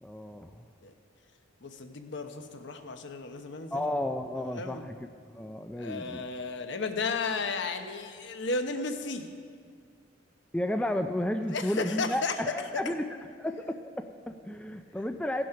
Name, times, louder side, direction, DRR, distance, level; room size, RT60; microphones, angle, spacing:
voice 1, 0.0-0.6 3.7-5.0 5.3-6.2 10.5-13.1 13.4-15.4, left 1 dB, 5° left, 6 dB, 0.3 m, -32 dB
voice 2, 1.6-3.9 4.4-4.9 5.8-9.3 11.5-12.4, left 4 dB, 65° left, 7 dB, 0.9 m, -34 dB
16.5 x 6.2 x 5.7 m, 2.1 s
head